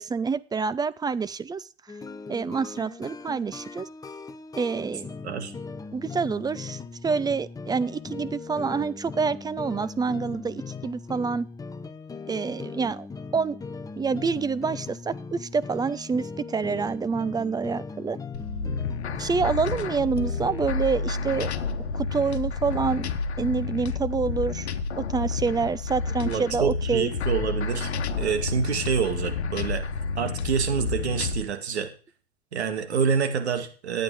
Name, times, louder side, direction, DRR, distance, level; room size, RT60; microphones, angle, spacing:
voice 1, 0.0-1.7 2.3-3.9 4.6-5.1 5.9-11.5 12.3-13.1 13.3-13.6 14.0-18.2 19.2-21.5 21.9-23.1 23.4-24.7 25.0-27.1, right 5 dB, 10° right, 17 dB, 0.5 m, -27 dB
sound 1, 1.9-20.6, left 4 dB, 10° left, 0.9 m, -39 dB
sound 2, 18.3-31.4, left 4 dB, 85° left, 1.1 m, -30 dB
voice 2, 26.2-27.9 28.2-29.9 30.2-31.9 32.5-34.0, right 6 dB, 85° right, 7 dB, 2.2 m, -27 dB
12.5 x 9.0 x 4.8 m, 0.39 s
hypercardioid pair, 100°, 32 cm